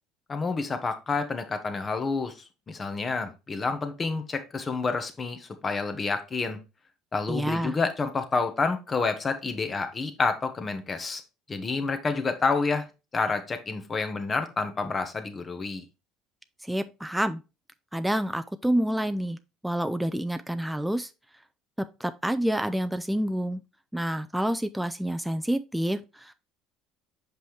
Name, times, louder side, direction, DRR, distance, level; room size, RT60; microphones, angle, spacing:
voice 1, 0.3-6.6 7.1-11.2 11.5-12.9 13.1-15.8, left 4 dB, 30° left, 1.4 m, -29 dB
voice 2, 7.3-7.7 16.6-17.4 17.9-19.4 19.6-21.1 21.8-23.6 23.9-26.3, right 1 dB, 5° right, 0.5 m, -28 dB
6.2 x 5.2 x 3.3 m
hypercardioid pair, 75°, 0 cm